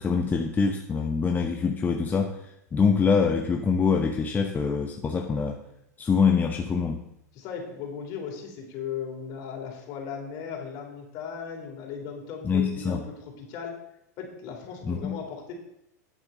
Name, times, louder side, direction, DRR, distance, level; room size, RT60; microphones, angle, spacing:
voice 1, 0.0-5.6 6.0-7.0 12.4-13.0 14.8-15.2, left 5 dB, 20° left, 3 dB, 0.8 m, -25 dB
voice 2, 7.3-13.8 14.2-15.5, left 6 dB, 50° left, 1 dB, 3.5 m, -37 dB
9.2 x 8.0 x 5.6 m, 0.80 s
hypercardioid pair, 115°, 9 cm